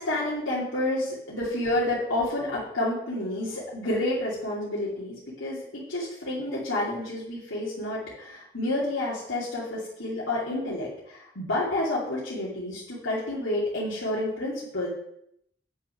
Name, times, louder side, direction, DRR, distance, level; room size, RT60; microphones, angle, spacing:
voice 1, 0.0-14.9, left 1 dB, 90° left, -8 dB, 2.7 m, -29 dB
8.7 x 6.2 x 5.8 m, 0.75 s
head